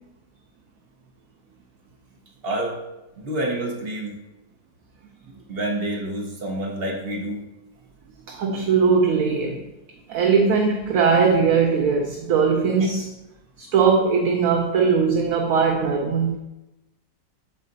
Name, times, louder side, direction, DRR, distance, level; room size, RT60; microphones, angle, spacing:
voice 1, 2.4-2.8 3.2-4.2 5.5-7.4, right 1 dB, 40° right, 1.2 m, -28 dB
voice 2, 8.3-9.7 10.1-13.1 13.6-16.4, right 5 dB, 65° right, 1.0 m, -20 dB
8.5 x 4.1 x 3.9 m
omnidirectional pair, 1.8 m